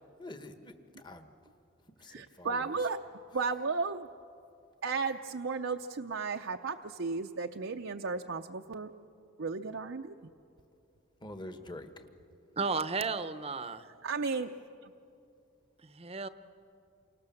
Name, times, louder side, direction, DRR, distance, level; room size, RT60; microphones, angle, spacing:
voice 1, 0.2-0.7 1.0-1.3 2.0-2.6 11.2-12.0, left 1 dB, 20° left, 1.4 m, -45 dB
voice 2, 2.1-3.0 3.3-4.1 4.8-8.9 9.4-10.1 14.0-14.5 14.8-14.9, right 4 dB, 60° right, 0.6 m, -34 dB
voice 3, 12.6-13.9 15.8-16.3, right 4 dB, 30° right, 0.8 m, -33 dB
29.0 x 25.0 x 7.2 m
head